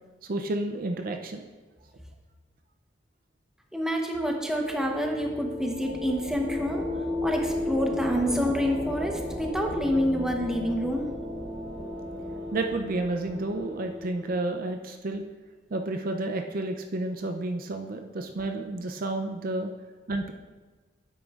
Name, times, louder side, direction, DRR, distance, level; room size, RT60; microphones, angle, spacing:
voice 1, 0.2-1.5 12.5-15.2 15.7-19.7 20.1-20.3, right 2 dB, 50° right, 5 dB, 0.4 m, -31 dB
voice 2, 3.7-6.8 7.2-11.1, equal, 5° right, 1 dB, 0.9 m, -27 dB
sound 1, 4.0-14.6, left 1 dB, 20° right, 1.3 m, -35 dB
9.2 x 8.3 x 2.4 m, 1.3 s
head